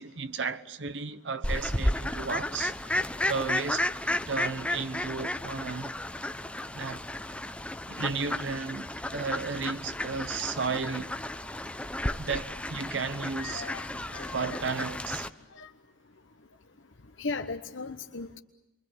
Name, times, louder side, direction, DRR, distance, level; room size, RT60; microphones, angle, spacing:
voice 1, 0.0-3.9 4.3-5.9 6.7-7.0 7.9-11.1 12.1-13.7 14.3-15.3, right 4 dB, 70° right, 1.1 m, -34 dB
Fowl, 1.4-15.3, left 1 dB, 5° left, 0.9 m, -33 dB
voice 2, 13.4-14.6 15.5-15.7 17.2-18.4, left 4 dB, 75° left, 1.0 m, -37 dB
28.5 x 23.5 x 8.2 m
head